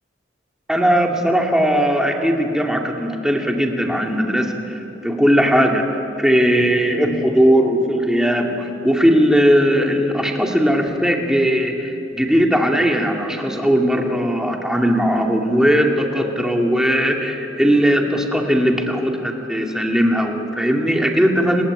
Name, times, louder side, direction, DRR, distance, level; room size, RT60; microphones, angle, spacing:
voice 1, 0.7-5.9 6.2-21.6, equal, 5° right, 1 dB, 2.4 m, -18 dB
28.5 x 21.0 x 8.9 m, 2.9 s
head